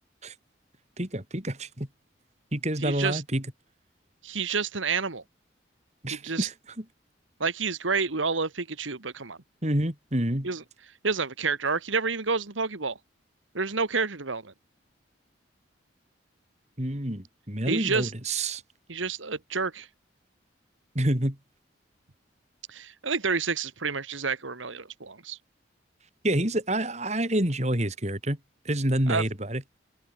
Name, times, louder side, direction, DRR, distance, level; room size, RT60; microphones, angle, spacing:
voice 1, 1.0-1.9 2.5-3.4 6.0-6.8 9.6-10.5 16.8-18.6 20.9-21.4 26.2-28.4 28.7-29.6, right 1 dB, 35° right, 3.8 m, -28 dB
voice 2, 2.8-3.2 4.2-5.2 6.1-6.5 7.4-9.4 10.4-10.6 11.0-13.0 13.5-14.5 17.7-18.1 18.9-19.9 22.7-25.4 29.1-29.2, right 4 dB, 85° right, 1.8 m, -29 dB
head